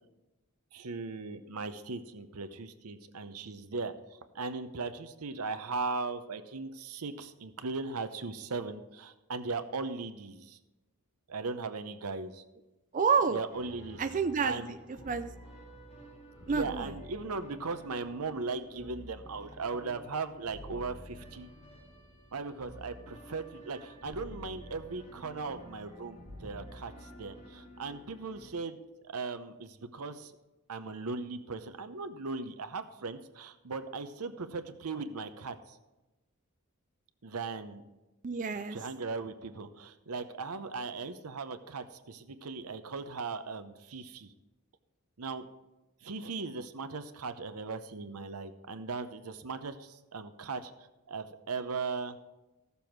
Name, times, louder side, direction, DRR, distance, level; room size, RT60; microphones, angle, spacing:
voice 1, 0.7-3.9 4.3-10.6 11.3-12.4 13.3-14.0 14.4-14.8 16.5-21.5 22.3-26.9 27.2-28.8 29.0-30.3 30.7-35.5 37.2-37.8 38.7-44.3 45.2-45.5 46.0-50.7 51.1-52.2, right 4 dB, 85° right, 10 dB, 0.8 m, -38 dB
voice 2, 12.9-13.4 14.0-14.6 15.1-15.3 16.5-16.9 38.2-38.8, right 5 dB, 35° right, 8 dB, 0.4 m, -28 dB
sound 1, 13.5-28.5, equal, 30° left, 3.6 m, -50 dB
15.0 x 6.9 x 4.6 m, 1.0 s
head